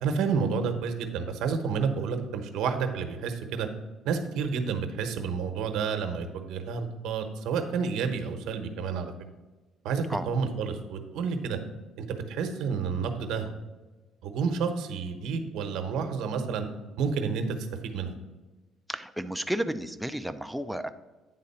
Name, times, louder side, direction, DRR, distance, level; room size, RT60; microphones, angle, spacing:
voice 1, 0.0-3.7 4.0-9.1 9.8-11.6 12.0-13.5 14.2-16.7 17.0-17.6 17.8-18.2, right 5 dB, 75° right, 6 dB, 1.0 m, -30 dB
voice 2, 18.9-20.9, right 1 dB, 5° right, 9 dB, 0.4 m, -32 dB
9.4 x 3.8 x 5.6 m, 1.2 s
cardioid pair, 150°, 0 cm